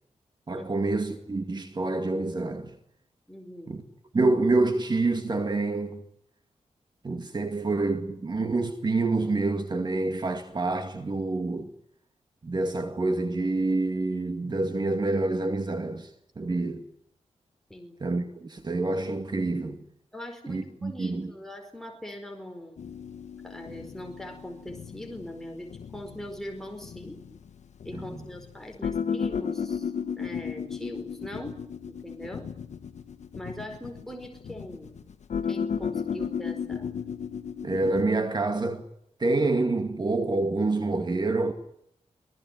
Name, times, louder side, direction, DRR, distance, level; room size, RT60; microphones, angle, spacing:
voice 1, 0.5-2.8 3.7-3.8 4.1-6.0 7.0-11.7 12.4-16.1 16.4-16.9 18.0-19.8 20.5-21.3 27.9-28.2 37.6-38.8 39.2-41.5, right 2 dB, 40° right, 2.2 m, -27 dB
voice 2, 3.3-3.8 16.5-16.6 17.7-17.9 20.1-22.8 23.4-27.2 27.8-31.6 31.9-32.5 33.3-34.9 35.5-36.9, left 1 dB, 5° left, 4.8 m, -41 dB
sound 1, 22.8-38.0, left 7 dB, 80° left, 1.5 m, -34 dB
26.0 x 19.5 x 9.4 m
wide cardioid pair, 100°, 12 cm